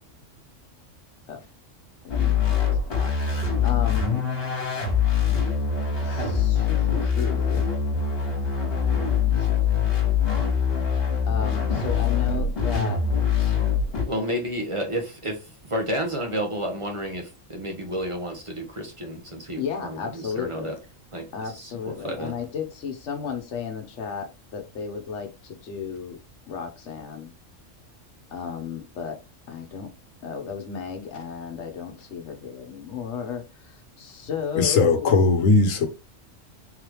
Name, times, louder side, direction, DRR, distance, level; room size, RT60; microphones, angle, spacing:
voice 1, 2.0-2.7 3.6-4.2 6.0-7.7 9.4-9.8 11.3-13.0 13.4-13.6 19.6-20.8 21.3-26.2 26.5-27.3 28.3-29.2 29.5-29.9 30.2-35.1, left 7 dB, 65° left, 1.1 m, -34 dB
sound 1, 2.1-14.0, left 7 dB, 50° left, 1.6 m, -23 dB
voice 2, 14.1-20.7 21.1-21.3 21.5-22.3, equal, 30° right, 0.7 m, -31 dB
voice 3, 34.6-35.9, left 4 dB, 90° left, 1.2 m, -19 dB
3.8 x 3.3 x 3.0 m
omnidirectional pair, 1.3 m